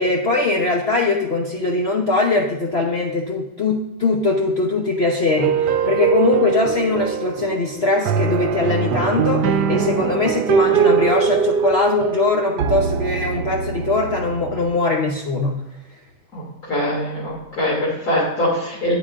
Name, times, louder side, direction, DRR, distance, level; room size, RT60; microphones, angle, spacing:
voice 1, 0.0-15.6, left 3 dB, 45° left, -1 dB, 1.0 m, -21 dB
sound 1, 5.4-14.7, right 7 dB, 85° right, 1.2 m, -22 dB
voice 2, 16.7-18.9, left 1 dB, 65° left, -6 dB, 3.1 m, -22 dB
13.0 x 8.6 x 2.5 m, 0.96 s
omnidirectional pair, 1.8 m